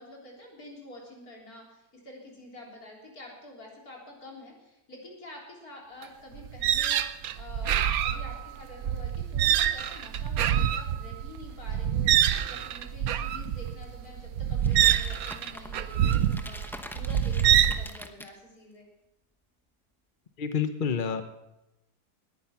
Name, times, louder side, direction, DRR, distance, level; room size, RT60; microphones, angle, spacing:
voice 1, 0.0-18.9, left 1 dB, 60° left, -1 dB, 4.1 m, -47 dB
sound 1, 6.0-6.1 6.4-17.9, right 10 dB, 65° right, 1.1 m, -26 dB
sound 2, 14.6-18.3, equal, ahead, 0.6 m, -44 dB
voice 2, 20.4-21.2, left 6 dB, 40° left, 8 dB, 0.9 m, -28 dB
19.0 x 10.0 x 5.9 m, 0.93 s
omnidirectional pair, 1.7 m